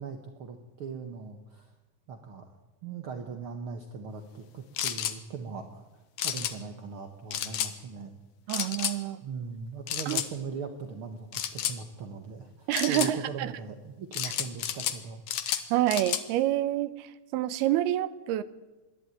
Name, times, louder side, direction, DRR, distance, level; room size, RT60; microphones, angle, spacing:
voice 1, 0.0-1.7 2.1-2.5 2.8-8.1 9.2-15.2, right 5 dB, 65° right, 5 dB, 1.3 m, -40 dB
sound 1, 4.8-5.2 6.2-6.5 7.3-7.7 8.5-9.0 9.9-10.3 11.3-11.8 12.7-13.1 14.1-15.0 15.3-16.2, left 10 dB, 65° left, 1.8 m, -31 dB
voice 2, 8.5-9.2 10.1-10.2 12.7-13.5 15.5-18.4, right 13 dB, 90° right, 14 dB, 2.9 m, -28 dB
26.0 x 11.5 x 9.2 m, 1.1 s
omnidirectional pair, 4.4 m